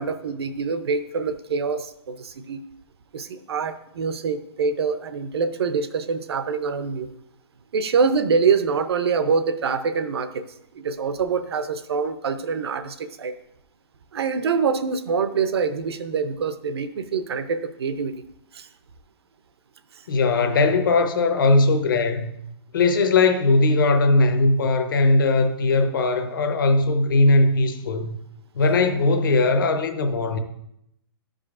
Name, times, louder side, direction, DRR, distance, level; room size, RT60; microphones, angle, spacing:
voice 1, 0.0-2.6 3.1-7.1 7.7-10.4 10.7-13.3 14.1-18.2 18.5-18.7, right 5 dB, 70° right, 0.6 m, -25 dB
voice 2, 20.1-22.4 22.7-28.2 28.6-30.4, left 3 dB, 55° left, 0.7 m, -19 dB
11.0 x 5.0 x 2.4 m
hypercardioid pair, 175°, 14 cm